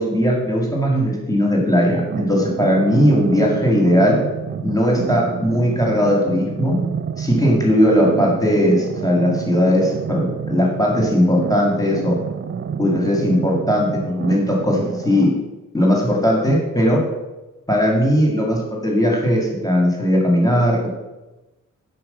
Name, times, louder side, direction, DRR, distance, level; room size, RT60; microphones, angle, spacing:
voice 1, 0.0-4.2 4.6-6.8 7.2-12.2 12.8-15.3 15.7-17.0 17.7-20.9, equal, 10° left, -2 dB, 2.1 m, -18 dB
sound 1, 1.9-15.3, right 7 dB, 40° right, 0.5 m, -29 dB
5.9 x 5.0 x 6.7 m, 1.1 s
cardioid pair, 55°, 32 cm